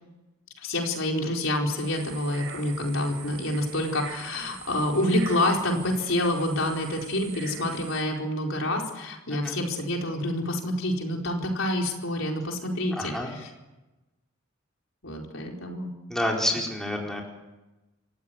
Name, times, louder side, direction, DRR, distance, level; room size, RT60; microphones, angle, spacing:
voice 1, 0.6-13.5 15.0-15.9 16.5-16.6, left 1 dB, 70° left, 1 dB, 4.5 m, -27 dB
sound 1, 1.8-8.0, right 7 dB, 65° right, 5.1 m, -43 dB
voice 2, 13.0-13.3 16.1-17.2, left 1 dB, 5° left, -1 dB, 4.5 m, -28 dB
27.5 x 15.5 x 9.4 m, 1.0 s
head